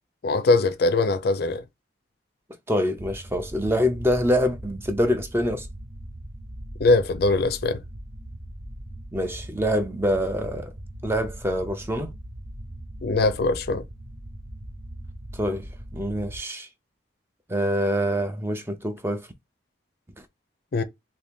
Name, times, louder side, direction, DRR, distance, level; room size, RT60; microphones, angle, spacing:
voice 1, 0.2-1.6 6.8-7.8 13.0-13.8 20.7-20.8, left 3 dB, 55° left, 0.4 m, -21 dB
voice 2, 2.7-5.7 9.1-10.7 11.0-12.1 15.3-15.7 15.9-16.7 17.5-19.3, equal, 10° right, 0.4 m, -25 dB
sound 1, 3.0-16.4, right 1 dB, 55° right, 0.8 m, -40 dB
2.9 x 2.7 x 3.5 m
head